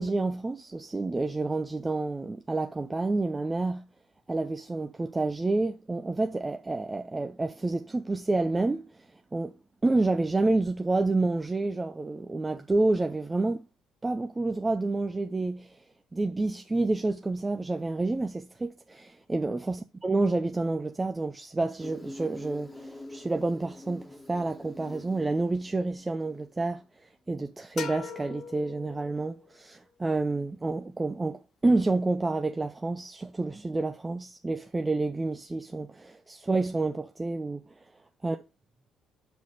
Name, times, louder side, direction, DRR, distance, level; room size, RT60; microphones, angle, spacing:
voice 1, 0.0-3.9 4.3-8.9 9.3-9.5 9.8-13.7 14.0-15.8 16.1-26.8 27.3-37.6 38.2-38.4, right 2 dB, 20° right, 0.7 m, -29 dB
Insect, 21.8-26.8, left 2 dB, 20° left, 1.6 m, -46 dB
sound 1, 27.8-29.5, left 6 dB, 55° left, 1.0 m, -40 dB
6.4 x 4.9 x 5.2 m
hypercardioid pair, 50°, 0 cm